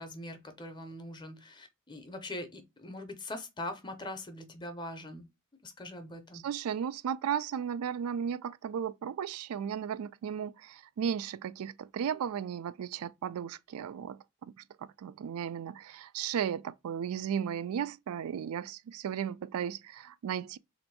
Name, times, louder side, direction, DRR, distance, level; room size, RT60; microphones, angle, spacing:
voice 1, 0.0-5.3 5.6-6.4, left 1 dB, 20° left, 0.6 m, -42 dB
voice 2, 6.4-20.6, right 8 dB, 85° right, 0.3 m, -35 dB
3.4 x 2.6 x 4.5 m
head